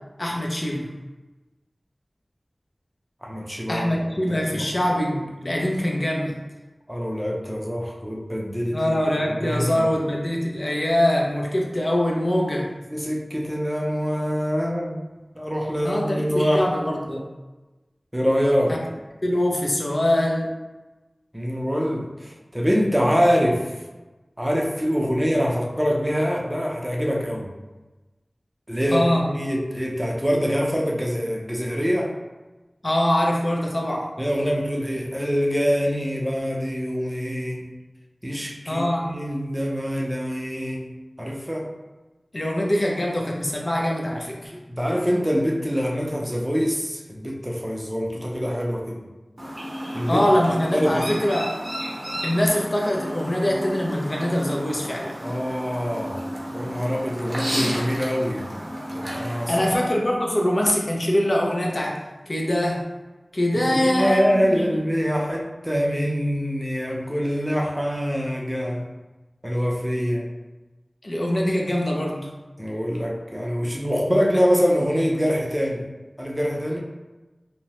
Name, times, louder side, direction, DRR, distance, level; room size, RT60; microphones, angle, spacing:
voice 1, 0.2-0.9 3.7-6.3 8.7-12.7 15.8-17.2 18.7-18.8 19.2-20.5 28.9-29.3 32.8-34.1 38.7-39.1 42.3-44.6 50.1-51.5 52.2-55.2 59.5-62.0 62.3-62.8 63.3-64.7 71.0-72.3, left 1 dB, 55° left, -1 dB, 0.5 m, -23 dB
voice 2, 3.2-3.9 4.3-4.7 6.9-9.9 12.9-15.0 15.4-16.6 18.1-18.8 21.3-23.7 24.4-27.5 28.7-32.1 34.2-37.7 38.2-41.7 44.5-49.0 49.9-50.2 50.7-51.0 55.2-58.5 58.9-59.7 63.5-68.8 69.4-70.3 72.6-75.8 76.2-76.8, equal, 10° right, -2 dB, 0.5 m, -25 dB
Chirp tweet, 49.4-59.8, equal, 45° right, 0.7 m, -32 dB
2.8 x 2.0 x 2.9 m, 1.1 s
wide cardioid pair, 45°, 0 cm